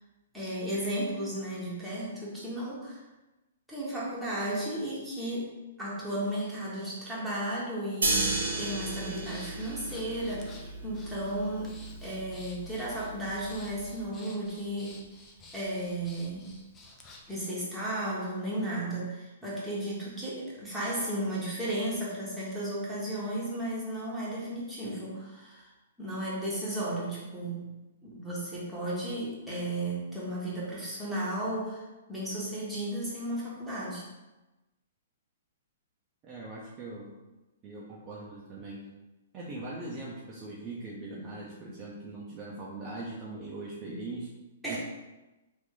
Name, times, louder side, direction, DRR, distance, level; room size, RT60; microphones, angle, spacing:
voice 1, 0.3-3.0 3.7-8.3 8.6-11.7 12.0-15.0 15.5-16.5 17.3-25.7 26.0-27.7 28.0-34.0 44.6-44.8, right 1 dB, ahead, -9 dB, 1.3 m, -34 dB
sound 1, 8.0-14.0, right 2 dB, 85° right, 1.0 m, -34 dB
Breathing, 8.5-17.4, left 2 dB, 20° left, 0.6 m, -52 dB
voice 2, 36.2-37.1 37.6-38.8 39.3-44.3 44.7-44.8, right 2 dB, 25° right, -5 dB, 0.6 m, -40 dB
3.0 x 2.6 x 3.8 m, 1.1 s
hypercardioid pair, 125°, 0 cm